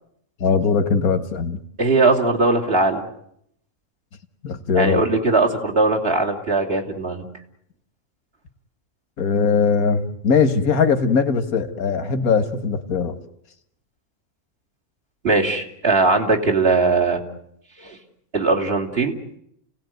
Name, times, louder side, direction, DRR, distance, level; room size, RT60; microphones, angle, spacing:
voice 1, 0.4-1.6 4.4-5.0 9.2-13.2, left 5 dB, 80° left, 9 dB, 2.0 m, -20 dB
voice 2, 1.8-3.0 4.7-7.2 15.2-17.2 17.8-18.0 18.3-19.1, right 3 dB, 45° right, 0 dB, 3.1 m, -19 dB
29.5 x 17.5 x 9.3 m, 0.75 s
omnidirectional pair, 1.5 m